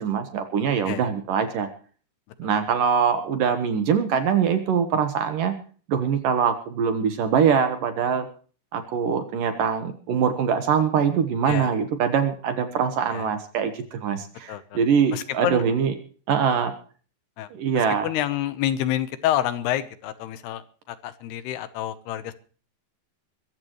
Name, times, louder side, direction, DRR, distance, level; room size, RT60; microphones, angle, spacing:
voice 1, 0.0-1.7 2.4-5.5 5.9-8.3 8.7-15.9 16.3-16.7 17.5-18.1, right 7 dB, 60° right, 9 dB, 2.6 m, -23 dB
voice 2, 14.5-14.8 15.1-15.6 17.4-17.5 17.7-22.3, left 12 dB, 75° left, 13 dB, 2.9 m, -28 dB
23.0 x 14.5 x 3.2 m, 0.41 s
omnidirectional pair, 5.0 m